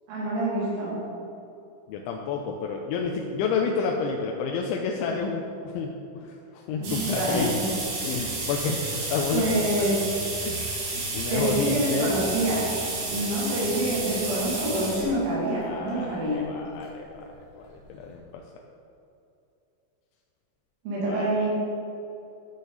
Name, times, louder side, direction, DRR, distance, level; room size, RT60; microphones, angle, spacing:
voice 1, 0.1-0.9 6.8-7.7 9.3-10.0 10.9-11.0 11.3-12.6 13.1-16.4 20.9-21.5, right 1 dB, 80° right, -8 dB, 5.3 m, -26 dB
voice 2, 1.9-7.5 8.0-9.5 10.4-10.6 11.1-12.1 13.6-14.2 15.6-17.1 17.5-17.6 17.9-18.4 21.1-21.4, left 5 dB, 85° left, 1 dB, 2.8 m, -30 dB
sound 1, 6.8-15.1 16.0-16.1 17.3-17.4 17.8-17.9 18.1-18.2, right 3 dB, 65° right, 4.4 m, -31 dB
13.5 x 6.6 x 4.0 m, 2.8 s
omnidirectional pair, 5.8 m